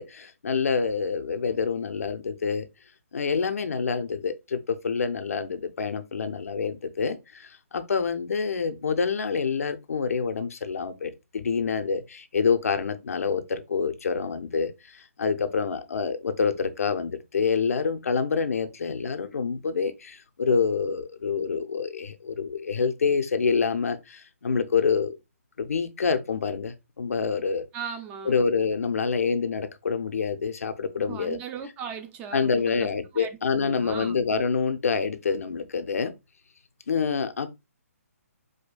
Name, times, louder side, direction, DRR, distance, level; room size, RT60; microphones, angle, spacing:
voice 1, 0.0-2.6 3.1-7.2 7.7-14.7 15.2-25.1 25.6-27.6 28.3-31.4 32.3-36.1 36.9-37.5, left 5 dB, 70° left, 0.5 m, -27 dB
voice 2, 27.7-28.3 31.1-32.9 33.1-33.3 33.6-34.3, right 7 dB, 15° right, 0.4 m, -38 dB
4.9 x 2.3 x 2.2 m
hypercardioid pair, 145°, 8 cm